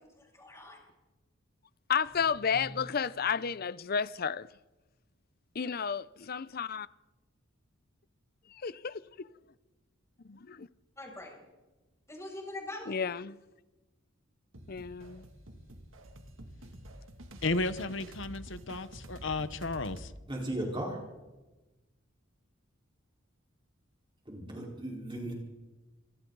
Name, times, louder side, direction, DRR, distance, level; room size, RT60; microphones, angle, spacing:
voice 1, 0.2-0.8 11.0-11.5 12.1-13.1, left 2 dB, 15° left, 7.1 m, -43 dB
voice 2, 1.9-4.5 5.5-6.9 8.5-9.3 10.2-10.7 12.9-13.4 14.7-15.2, left 6 dB, 45° left, 0.6 m, -32 dB
sound 1, 14.5-20.2, right 1 dB, 75° right, 2.4 m, -48 dB
voice 3, 17.4-20.1, left 3 dB, 65° left, 1.1 m, -33 dB
voice 4, 20.3-21.0 24.3-25.3, right 1 dB, 25° right, 4.4 m, -36 dB
27.5 x 25.0 x 4.0 m
head